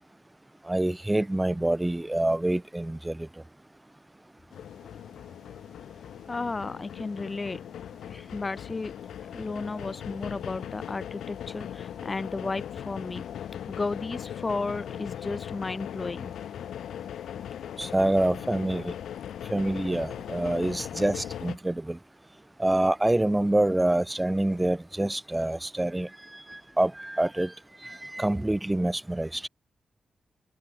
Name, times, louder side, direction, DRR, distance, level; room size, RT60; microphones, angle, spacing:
voice 1, 0.7-3.2 17.8-18.9 19.5-22.0 22.6-26.1 26.8-27.5 27.8-29.4, right 1 dB, 15° right, 0.9 m, -26 dB
sound 1, 4.5-21.6, left 10 dB, 90° left, 1.0 m, -39 dB
voice 2, 6.3-7.6 8.1-8.9 9.3-13.2 13.7-16.3, left 3 dB, 35° left, 0.6 m, -33 dB
cardioid pair, 65°, 0 cm